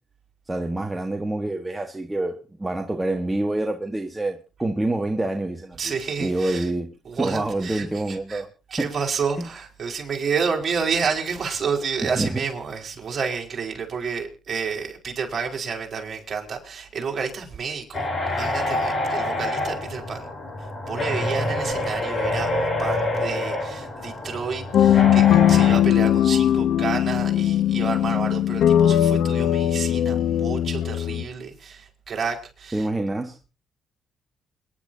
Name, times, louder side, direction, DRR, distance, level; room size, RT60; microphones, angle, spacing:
voice 1, 0.5-5.8 6.2-8.5 8.8-8.9 9.4-9.5 12.0-12.4 32.7-33.5, right 2 dB, 15° right, 1.4 m, -27 dB
voice 2, 5.8-6.7 7.0-8.4 8.7-20.3 20.6-32.9, right 5 dB, 45° right, 4.4 m, -30 dB
sound 1, 17.9-25.8, left 1 dB, 40° left, 7.3 m, -27 dB
sound 2, 24.7-31.2, left 11 dB, 75° left, 0.8 m, -19 dB
28.5 x 10.5 x 2.7 m
cardioid pair, 90°, 0 cm